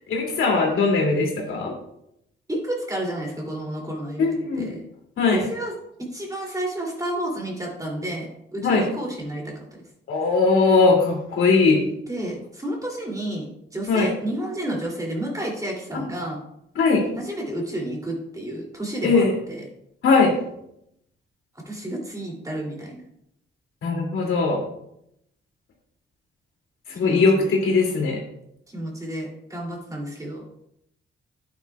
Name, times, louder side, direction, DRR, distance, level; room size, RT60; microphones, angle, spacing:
voice 1, 0.1-1.7 4.2-4.7 5.2-5.5 8.6-8.9 10.1-11.8 13.9-14.1 16.7-17.0 19.0-19.3 20.0-20.3 23.8-24.6 26.9-28.2, left 4 dB, 80° left, 0 dB, 2.7 m, -20 dB
voice 2, 2.5-4.8 5.3-5.7 6.1-9.5 12.1-13.5 13.7-16.4 17.2-19.6 21.6-23.0 27.0-27.5 28.7-30.4, right 1 dB, 15° right, -1 dB, 2.9 m, -31 dB
11.0 x 9.5 x 2.4 m, 0.77 s
cardioid pair, 105°, 21 cm